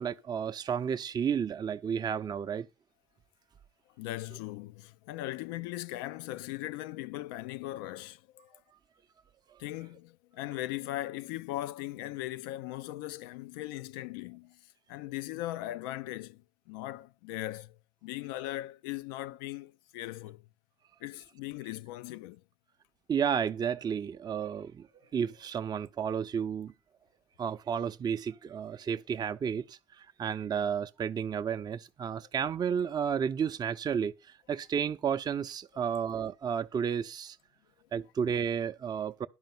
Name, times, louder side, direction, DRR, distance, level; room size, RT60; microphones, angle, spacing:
voice 1, 0.0-2.7 23.1-24.9 25.1-26.7 27.4-34.1 34.5-37.4 37.9-39.3, right 7 dB, 35° right, 0.6 m, -32 dB
voice 2, 4.0-8.6 9.6-20.5 21.0-22.4 32.2-32.3, left 16 dB, 65° left, 0.5 m, -39 dB
11.0 x 5.4 x 7.0 m
figure-of-eight pair, 55°, 12 cm